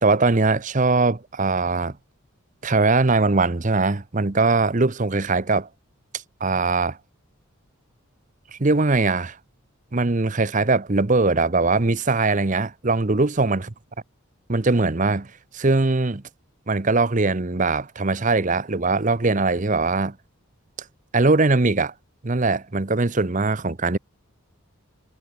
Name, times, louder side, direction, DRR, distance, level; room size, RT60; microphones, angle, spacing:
voice 1, 0.0-1.9 2.6-5.7 6.4-7.0 8.5-9.4 9.9-13.7 14.5-16.2 16.7-20.1 21.1-21.9 22.2-24.0, right 3 dB, 35° right, 0.8 m, -21 dB
head